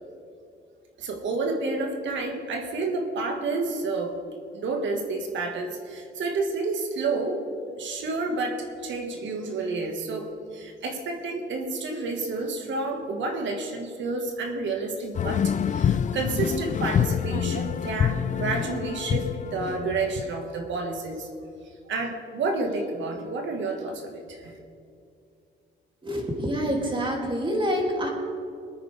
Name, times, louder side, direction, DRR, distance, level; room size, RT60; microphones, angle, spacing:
voice 1, 1.0-4.1 4.5-7.5 7.8-21.3 21.9-24.6, right 3 dB, 70° right, 3 dB, 1.8 m, -30 dB
sound 1, 15.1-20.3, left 8 dB, 40° left, 0.4 m, -26 dB
voice 2, 26.0-28.1, equal, 25° right, -1 dB, 3.0 m, -27 dB
22.5 x 9.4 x 3.6 m, 2.4 s
cardioid pair, 90°, 20 cm